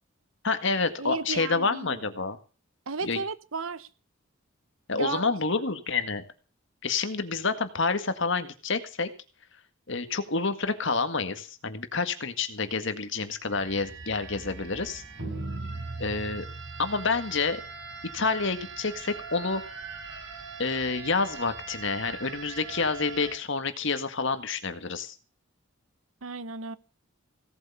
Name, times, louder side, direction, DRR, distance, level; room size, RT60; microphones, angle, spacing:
voice 1, 0.4-2.4 3.0-3.2 4.9-6.2 6.8-9.1 9.9-15.0 16.0-16.5 16.8-17.6 18.1-19.6 20.6-25.2, left 4 dB, 60° left, 1.9 m, -28 dB
voice 2, 1.0-2.0 2.9-3.9 4.9-5.2 26.2-26.8, right 4 dB, 75° right, 1.0 m, -34 dB
sound 1, 13.5-23.3, right 4 dB, 60° right, 7.8 m, -40 dB
17.5 x 8.0 x 7.0 m
head